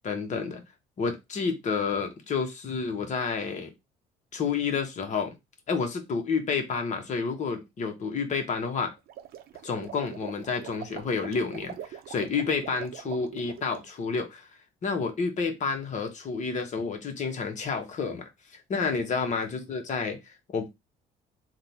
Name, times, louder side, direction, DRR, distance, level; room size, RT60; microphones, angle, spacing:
voice 1, 0.0-0.6 1.0-3.7 4.3-5.3 5.7-8.9 9.6-14.5 14.8-20.7, left 5 dB, 45° left, 1.3 m, -30 dB
sound 1, 9.0-13.9, right 10 dB, 65° right, 0.6 m, -43 dB
3.7 x 2.6 x 4.5 m
cardioid pair, 110°, 17 cm